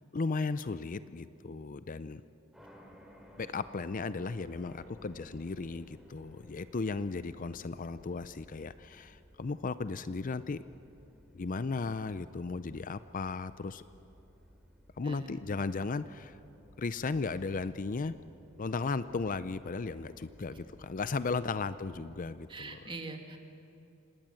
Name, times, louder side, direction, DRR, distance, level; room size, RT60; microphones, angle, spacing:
voice 1, 0.1-2.2 3.4-10.6 11.3-13.8 15.0-16.4 16.8-18.1 18.6-22.8, left 4 dB, 40° left, 14 dB, 0.5 m, -35 dB
sound 1, 2.5-22.2, equal, ahead, 3.3 m, -57 dB
voice 2, 15.0-15.3 20.5-20.6 22.5-23.4, right 3 dB, 25° right, 4 dB, 2.1 m, -43 dB
26.0 x 19.5 x 7.7 m, 2.9 s
head